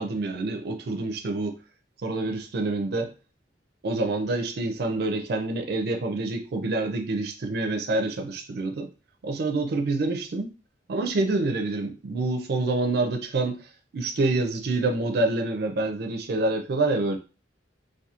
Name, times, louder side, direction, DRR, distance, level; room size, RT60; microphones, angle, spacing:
voice 1, 0.0-1.6 2.0-3.1 3.8-8.9 9.2-10.5 10.9-13.7 13.9-17.2, right 2 dB, 60° right, 4 dB, 0.4 m, -27 dB
2.4 x 2.2 x 2.8 m, 0.33 s
head